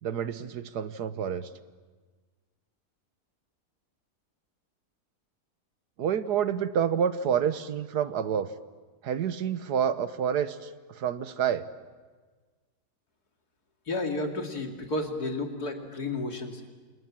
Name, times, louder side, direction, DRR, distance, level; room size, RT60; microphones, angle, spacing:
voice 1, 0.0-1.5 6.0-8.5 9.0-10.7 10.9-11.7, right 8 dB, 90° right, 12 dB, 1.6 m, -28 dB
voice 2, 13.9-16.7, left 2 dB, 75° left, 3 dB, 3.2 m, -32 dB
29.0 x 27.0 x 7.5 m, 1.4 s
omnidirectional pair, 1.7 m